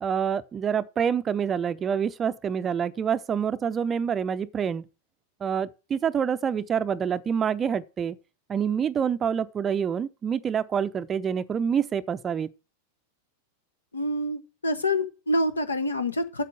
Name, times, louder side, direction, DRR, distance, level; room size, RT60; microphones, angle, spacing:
voice 1, 0.0-4.8 5.4-8.2 8.5-12.5, right 7 dB, 25° right, 0.5 m, -27 dB
voice 2, 13.9-16.4, left 1 dB, 75° left, 1.3 m, -27 dB
8.2 x 7.5 x 7.4 m
figure-of-eight pair, 90°, 0 cm